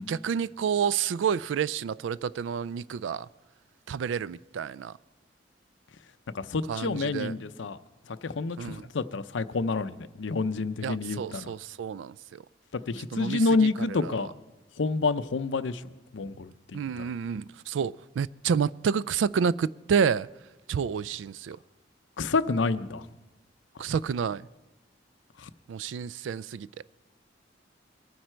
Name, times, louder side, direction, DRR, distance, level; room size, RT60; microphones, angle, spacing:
voice 1, 0.1-3.3 3.9-4.9 6.7-7.3 8.6-8.9 10.8-12.4 13.1-14.3 16.7-20.3 20.7-21.6 23.8-24.5 25.7-26.7, right 7 dB, 75° right, 0.3 m, -29 dB
voice 2, 6.3-7.8 8.1-11.5 12.7-14.3 14.8-15.8 16.1-16.5 17.0-17.1 22.2-23.0 25.4-25.5, left 3 dB, 70° left, 0.6 m, -28 dB
22.5 x 9.4 x 4.4 m
head